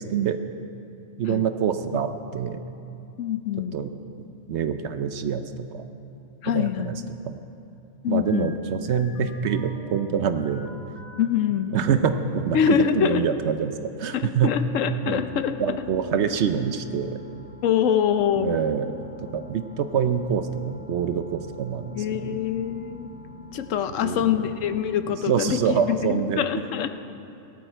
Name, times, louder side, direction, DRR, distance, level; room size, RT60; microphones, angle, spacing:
voice 1, 1.2-2.6 3.7-3.9 4.5-5.8 6.4-7.0 7.3-7.4 8.1-10.7 11.7-14.5 15.0-15.2 15.6-17.2 18.4-22.4 24.0-24.3 25.3-26.4, right 7 dB, 65° right, 9 dB, 0.9 m, -26 dB
voice 2, 3.2-3.8 6.4-7.0 8.0-8.6 11.2-11.8 12.5-13.2 14.1-15.6 17.6-18.6 21.9-23.1 23.5-26.9, left 9 dB, 75° left, 10 dB, 1.0 m, -24 dB
sound 1, 8.3-11.3 11.8-13.4, right 1 dB, 90° right, 2.4 m, -46 dB
sound 2, 14.4-25.9, left 4 dB, 50° left, 2.2 m, -44 dB
18.0 x 13.0 x 4.5 m, 2.7 s
omnidirectional pair, 1.3 m